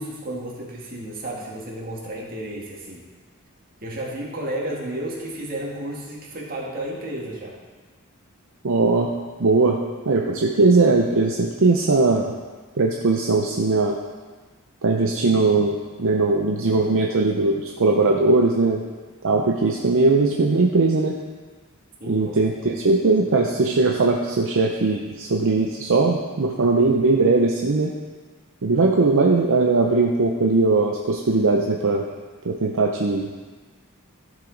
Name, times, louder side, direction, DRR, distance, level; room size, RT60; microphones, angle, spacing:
voice 1, 0.0-3.0 3.8-7.6 22.0-22.4 22.6-22.8, right 1 dB, 40° right, -4 dB, 1.8 m, -32 dB
voice 2, 8.6-9.1 9.4-9.8 10.1-12.3 12.8-14.0 14.8-18.8 19.2-21.1 22.1-27.9 28.6-32.0 32.4-33.3, right 3 dB, 60° right, 0 dB, 0.6 m, -19 dB
13.5 x 4.9 x 3.9 m, 1.4 s
head